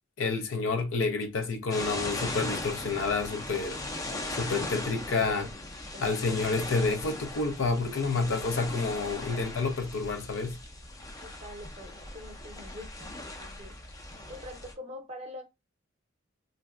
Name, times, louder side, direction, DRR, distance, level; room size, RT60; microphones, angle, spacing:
voice 1, 0.2-3.8 4.3-5.5 6.0-10.6, left 4 dB, 85° left, 0.5 m, -29 dB
sound 1, 1.7-14.7, left 2 dB, 20° left, 0.4 m, -39 dB
voice 2, 5.9-6.6 11.2-13.7 14.3-15.4, left 1 dB, 35° right, 0.7 m, -45 dB
3.1 x 2.6 x 2.3 m
head